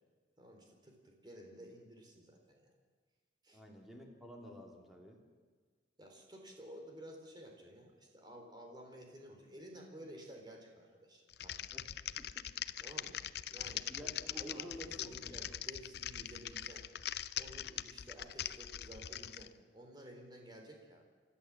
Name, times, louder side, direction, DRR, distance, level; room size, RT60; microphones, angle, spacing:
voice 1, 0.4-2.7 3.4-3.6 6.0-11.6 12.8-13.2 13.5-16.9 17.4-21.0, right 1 dB, 25° right, 2 dB, 3.9 m, -53 dB
voice 2, 3.5-5.2 11.7-11.9 12.2-12.5 13.9-15.4, equal, ahead, -1 dB, 3.0 m, -51 dB
Typing, 11.3-19.5, left 11 dB, 65° left, 0.6 m, -42 dB
30.0 x 12.5 x 7.4 m, 1.5 s
head